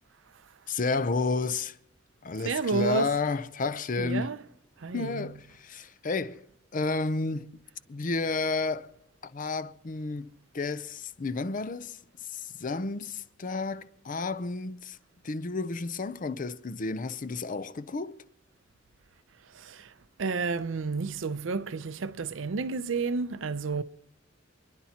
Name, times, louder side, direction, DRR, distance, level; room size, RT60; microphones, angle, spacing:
voice 1, 0.7-1.8 2.2-4.3 4.9-6.4 6.7-7.5 7.9-8.9 9.2-15.0 15.2-18.2, left 3 dB, 45° left, 0.5 m, -31 dB
voice 2, 2.4-3.1 4.0-4.4 4.8-5.3 19.5-19.9 20.2-23.8, right 4 dB, 75° right, 0.6 m, -31 dB
29.0 x 10.5 x 2.9 m
head